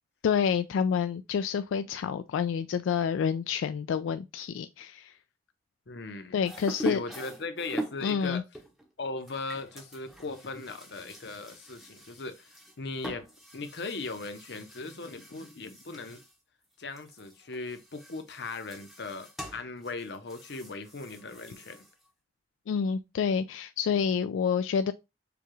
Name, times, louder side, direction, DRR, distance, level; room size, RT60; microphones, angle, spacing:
voice 1, 0.2-5.1 6.3-7.0 8.0-8.4 22.7-24.9, left 7 dB, 90° left, 0.3 m, -28 dB
voice 2, 5.9-6.5 6.8-8.4 9.0-13.3 13.5-16.2 16.8-21.8, left 3 dB, 60° left, 0.7 m, -38 dB
sound 1, 6.4-8.1 8.5-16.4 16.6-22.1, right 1 dB, ahead, 0.6 m, -43 dB
6.8 x 2.3 x 3.0 m
head